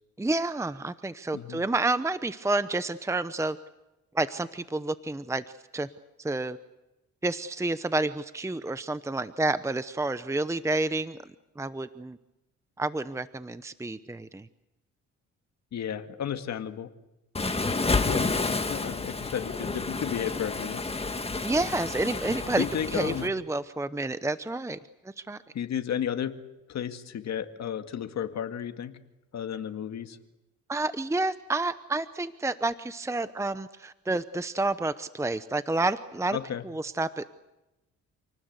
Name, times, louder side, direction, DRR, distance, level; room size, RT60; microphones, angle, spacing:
voice 1, 0.2-3.6 4.1-5.4 5.7-5.9 6.2-6.6 7.2-11.2 11.6-12.2 12.8-14.5 17.4-17.7 21.4-24.8 25.2-25.4 30.7-36.4 36.6-37.2, right 2 dB, 10° right, 13 dB, 0.9 m, -29 dB
voice 2, 15.7-16.9 18.0-20.8 22.6-23.3 25.5-26.4 26.7-29.0 29.3-30.2 36.3-36.6, left 9 dB, 60° left, 8 dB, 2.1 m, -33 dB
Waves surf, 17.3-23.3, left 3 dB, 20° left, 1.9 m, -30 dB
28.5 x 19.0 x 8.2 m, 0.98 s
cardioid pair, 90°, 30 cm